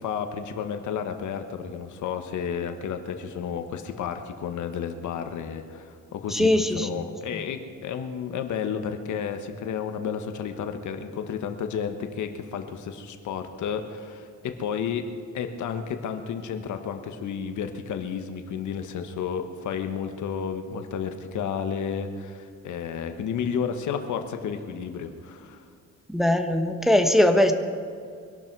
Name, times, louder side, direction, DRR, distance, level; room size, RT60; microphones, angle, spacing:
voice 1, 0.0-15.1 15.3-25.6, left 7 dB, 75° left, 7 dB, 1.4 m, -32 dB
voice 2, 6.3-7.0 26.1-27.5, left 1 dB, ahead, 5 dB, 1.2 m, -21 dB
24.0 x 12.0 x 4.7 m, 2.2 s
cardioid pair, 90°, 30 cm